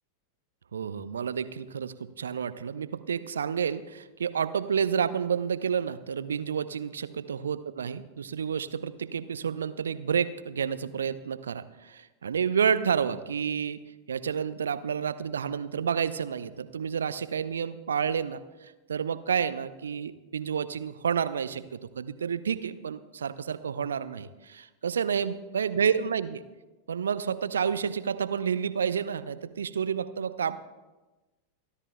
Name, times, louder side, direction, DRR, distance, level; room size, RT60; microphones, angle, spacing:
voice 1, 0.7-13.8 14.1-26.4 26.9-30.6, right 7 dB, 70° right, 14 dB, 0.6 m, -30 dB
26.5 x 13.0 x 2.2 m, 1.1 s
figure-of-eight pair, 90°, 0 cm